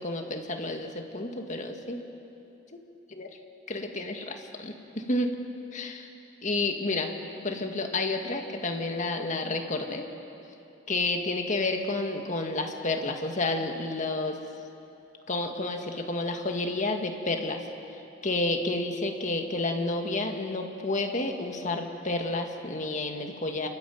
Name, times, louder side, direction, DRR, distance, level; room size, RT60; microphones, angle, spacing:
voice 1, 0.0-2.0 2.7-2.8 3.2-3.3 3.7-5.3 5.7-6.1 6.4-7.1 7.4-10.1 10.9-14.4 15.3-17.6 18.2-23.7, left 2 dB, 40° left, 4 dB, 1.9 m, -30 dB
29.5 x 13.5 x 9.4 m, 2.8 s
head